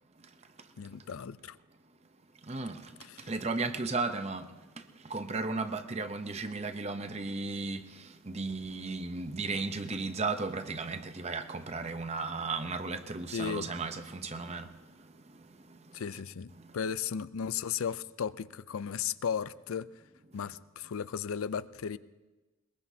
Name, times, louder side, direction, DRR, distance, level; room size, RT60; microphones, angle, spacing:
voice 1, 0.8-1.6 3.0-3.3 13.3-13.7 15.9-19.9 20.3-22.0, left 7 dB, 80° left, 0.4 m, -35 dB
voice 2, 2.4-2.9 3.2-14.7 15.0-16.0 16.5-16.7, right 3 dB, 30° right, 0.7 m, -35 dB
21.5 x 21.5 x 2.8 m
head